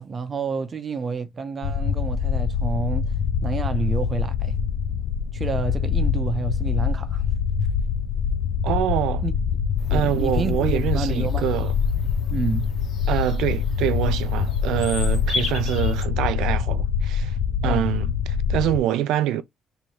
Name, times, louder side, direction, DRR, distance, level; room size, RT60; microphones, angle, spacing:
voice 1, 0.0-3.1 3.4-4.6 5.3-7.2 9.2-9.3 9.9-11.5 12.3-12.7 17.6-17.9, right 5 dB, 35° right, 0.7 m, -29 dB
sound 1, 1.6-18.8, left 7 dB, 80° left, 0.3 m, -24 dB
voice 2, 8.6-9.2 9.9-11.7 13.1-17.4 17.6-19.4, right 12 dB, 90° right, 0.5 m, -25 dB
Bird vocalization bird call bird song, 9.8-16.0, left 3 dB, 50° left, 1.3 m, -36 dB
3.3 x 3.1 x 2.9 m
cardioid pair, 115°, 0 cm